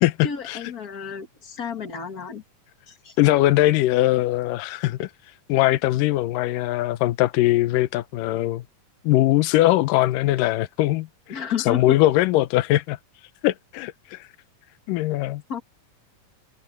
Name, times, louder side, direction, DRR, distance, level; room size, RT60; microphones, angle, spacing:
voice 1, 0.2-2.4 2.9-3.2 11.3-12.0 15.5-15.6, left 7 dB, 40° left, 1.4 m, -31 dB
voice 2, 3.2-5.1 5.5-8.6 9.0-11.1 11.7-13.0 13.4-14.2 14.9-15.4, left 16 dB, 75° left, 2.3 m, -21 dB
omnidirectional pair, 4.0 m